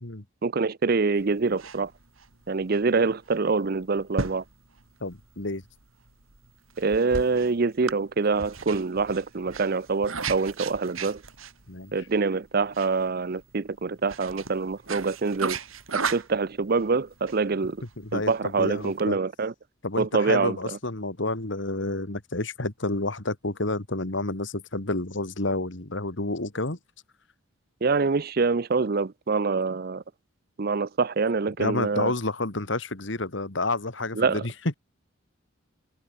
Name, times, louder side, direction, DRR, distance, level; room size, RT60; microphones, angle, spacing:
voice 1, 0.4-1.9 2.5-4.4 6.8-11.2 11.9-15.6 15.9-17.8 18.1-19.5 20.0-20.6 27.8-30.0 30.6-32.1 34.1-34.4, right 4 dB, 50° right, 0.6 m, -25 dB
sound 1, 1.2-19.1, right 4 dB, 90° right, 4.1 m, -37 dB
voice 2, 5.0-5.6 11.7-11.9 18.0-19.2 19.8-26.8 31.6-34.5, left 2 dB, 60° left, 2.1 m, -30 dB
head